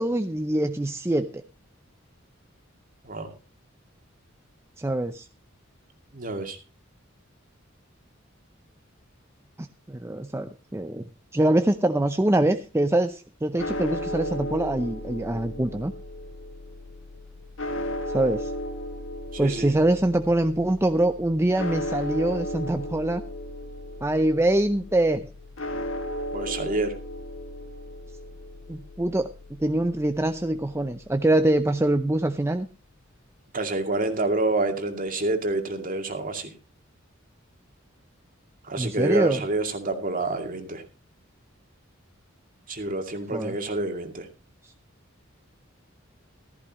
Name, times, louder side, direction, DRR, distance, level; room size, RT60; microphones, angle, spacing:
voice 1, 0.0-1.4 4.8-5.3 9.6-11.0 11.3-15.9 18.1-18.5 19.4-23.2 24.0-25.3 28.7-32.7 38.8-39.4 43.3-43.6, right 1 dB, 15° right, 8 dB, 0.6 m, -24 dB
voice 2, 6.1-6.6 19.3-19.7 26.3-26.9 33.5-36.5 38.6-40.8 42.7-44.3, right 2 dB, 45° right, 5 dB, 2.3 m, -28 dB
sound 1, 13.6-31.8, equal, 70° left, 1.9 m, -35 dB
15.0 x 14.0 x 3.1 m, 0.31 s
head